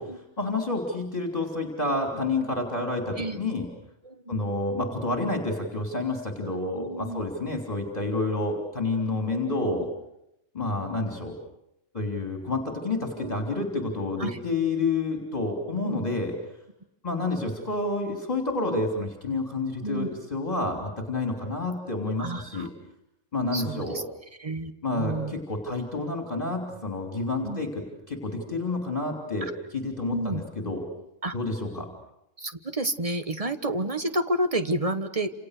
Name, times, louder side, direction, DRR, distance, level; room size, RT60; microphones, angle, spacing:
voice 1, 0.4-3.7 4.3-9.8 10.5-11.3 11.9-16.3 17.0-22.7 23.3-24.0 24.8-27.7 28.1-29.5 29.7-30.8 31.3-31.9, left 2 dB, 30° left, 2 dB, 3.4 m, -29 dB
voice 2, 6.8-7.3 13.1-13.3 14.2-14.4 15.8-16.1 19.8-20.1 22.2-22.7 23.5-24.0 24.4-25.4 27.4-27.6 29.4-29.5 30.1-30.4 31.2-31.3 32.4-35.3, right 1 dB, 30° right, 9 dB, 1.3 m, -30 dB
29.5 x 28.0 x 6.7 m, 0.83 s
omnidirectional pair, 1.3 m